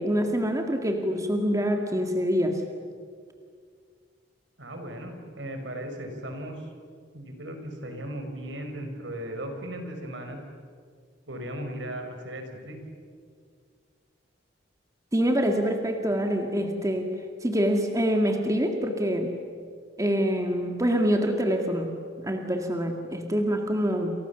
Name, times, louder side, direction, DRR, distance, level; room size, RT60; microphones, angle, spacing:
voice 1, 0.0-2.6 15.1-17.1 17.4-19.3 20.0-21.9 22.2-24.1, equal, 20° right, 3 dB, 2.1 m, -25 dB
voice 2, 4.6-6.7 7.1-10.4 11.3-12.8, right 1 dB, 70° right, 5 dB, 5.2 m, -37 dB
29.0 x 29.0 x 7.1 m, 2.1 s
head